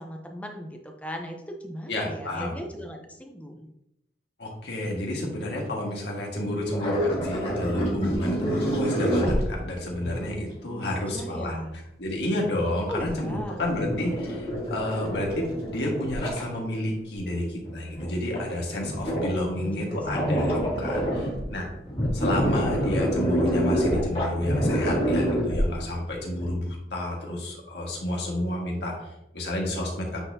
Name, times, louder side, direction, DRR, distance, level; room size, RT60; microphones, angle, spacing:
voice 1, 0.0-3.6 10.6-11.7 12.9-13.6 19.5-20.2, equal, 10° left, 3 dB, 0.6 m, -37 dB
voice 2, 1.9-2.5 4.4-11.6 12.0-21.7 22.1-30.2, left 1 dB, 75° left, -1 dB, 1.6 m, -30 dB
sound 1, 6.7-10.3 12.9-16.5 17.3-17.4 17.7-18.1 18.4-18.5 18.7-19.6 19.9-21.6 21.9-26.0 26.4-26.5, equal, 30° left, 1.7 m, -27 dB
8.8 x 4.2 x 2.8 m, 0.83 s
head